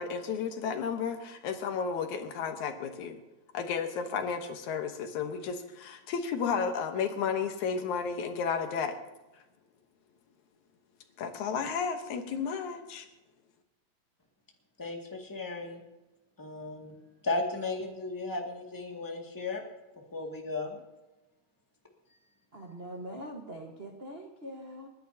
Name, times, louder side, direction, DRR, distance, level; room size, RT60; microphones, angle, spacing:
voice 1, 0.0-3.2 3.5-9.0 11.2-13.1, left 6 dB, 80° left, 6 dB, 2.5 m, -33 dB
voice 2, 14.8-15.8 16.4-17.0 17.2-19.6 20.1-20.8, left 3 dB, 10° left, 0 dB, 1.6 m, -35 dB
voice 3, 22.5-24.9, right 1 dB, 45° right, -1 dB, 0.8 m, -43 dB
30.0 x 10.5 x 2.8 m, 1.0 s
omnidirectional pair, 3.4 m